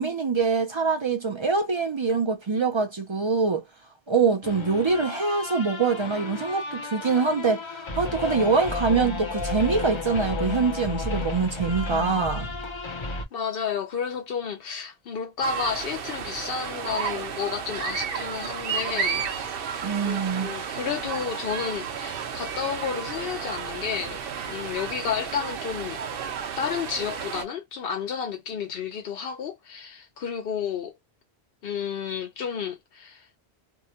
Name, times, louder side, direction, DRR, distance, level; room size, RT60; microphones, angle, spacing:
voice 1, 0.0-3.6 4.1-12.5 19.8-20.5, right 4 dB, 45° right, 0.4 m, -24 dB
sound 1, 4.4-13.2, left 3 dB, 35° left, 0.6 m, -32 dB
voice 2, 13.3-19.2 20.0-24.2 24.5-26.0 26.6-30.9 31.6-33.3, left 7 dB, 65° left, 0.8 m, -31 dB
sound 2, 15.4-27.4, right 7 dB, 65° right, 0.8 m, -32 dB
2.7 x 2.2 x 2.7 m
omnidirectional pair, 1.1 m